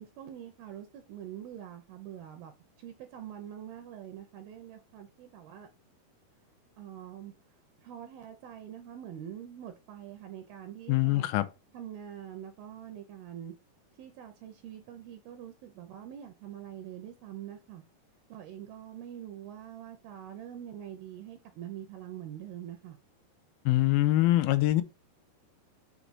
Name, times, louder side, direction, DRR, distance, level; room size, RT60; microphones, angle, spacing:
voice 1, 0.0-2.5 2.8-5.7 6.8-7.3 7.8-11.3 11.7-13.5 14.0-17.8 18.3-23.0, right 10 dB, 75° right, 2.5 m, -44 dB
voice 2, 10.9-11.5 23.7-24.8, left 16 dB, 85° left, 2.2 m, -24 dB
6.0 x 5.0 x 4.1 m
omnidirectional pair, 4.8 m